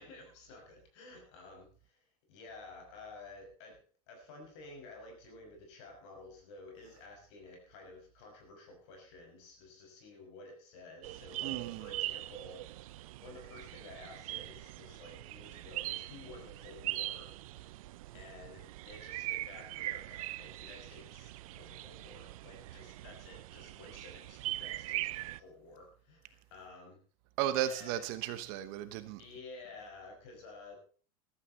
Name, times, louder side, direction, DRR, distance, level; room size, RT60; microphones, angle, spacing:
voice 1, 0.0-3.8 4.1-17.8 18.1-27.0 27.5-28.1 29.2-30.8, left 3 dB, 55° left, 5.8 m, -52 dB
sound 1, 11.0-25.4, right 16 dB, 75° right, 0.6 m, -42 dB
voice 2, 11.4-11.9 27.4-29.2, right 11 dB, 45° right, 1.1 m, -35 dB
14.5 x 13.0 x 4.2 m
supercardioid pair, 180°, 18 cm